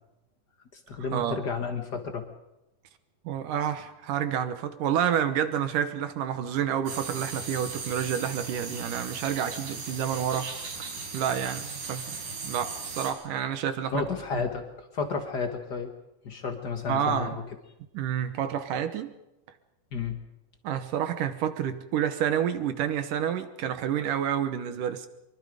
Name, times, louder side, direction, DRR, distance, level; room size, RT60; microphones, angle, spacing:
voice 1, 0.7-2.3 13.9-15.9 16.2-17.4 19.9-20.2, left 5 dB, 65° left, 6 dB, 1.0 m, -32 dB
voice 2, 3.3-10.5 11.1-14.0 16.9-17.4 17.9-19.1 20.6-25.1, right 9 dB, 65° right, 10 dB, 2.5 m, -29 dB
sound 1, 6.9-13.1, right 4 dB, 85° right, 6.2 m, -37 dB
24.0 x 23.5 x 5.1 m, 0.92 s
omnidirectional pair, 4.4 m